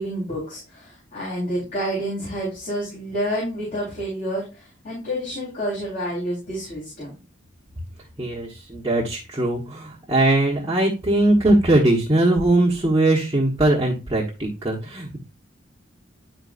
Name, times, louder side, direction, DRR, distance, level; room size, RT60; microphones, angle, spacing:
voice 1, 0.0-7.2, equal, 45° left, -7 dB, 3.7 m, -29 dB
voice 2, 8.2-15.2, right 1 dB, 20° right, -4 dB, 1.2 m, -20 dB
10.5 x 4.4 x 2.5 m, 0.31 s
head